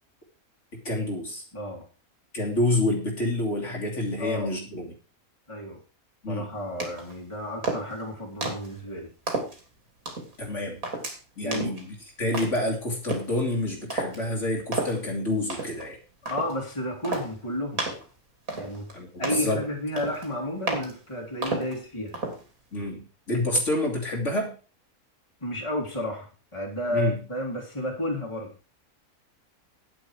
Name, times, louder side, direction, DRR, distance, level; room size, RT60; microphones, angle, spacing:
voice 1, 0.8-1.4 2.3-4.9 6.2-6.6 10.4-10.8 11.4-16.0 18.9-19.6 22.7-24.5 26.9-27.1, left 1 dB, 55° left, 0 dB, 2.9 m, -28 dB
voice 2, 1.5-1.8 4.2-4.6 5.5-5.8 6.3-9.1 11.4-11.8 16.2-17.9 18.5-18.9 19.2-22.2 25.4-28.5, left 1 dB, 20° left, 0 dB, 2.6 m, -32 dB
sound 1, 6.8-7.2 7.6-8.0 8.4-8.7 9.3-9.6 10.1-10.3 10.8-11.2 11.5-11.8 12.3-12.7 13.1-13.3 13.9-14.2 14.7-15.0 15.5-15.9 16.3-16.5 17.0-17.3 17.8-18.1 18.5-18.9 19.2-19.5 20.0-20.3 20.7-20.9 21.4-21.8 22.1-22.4, right 2 dB, 70° right, 3.1 m, -31 dB
9.9 x 9.0 x 4.7 m, 0.34 s
omnidirectional pair, 1.5 m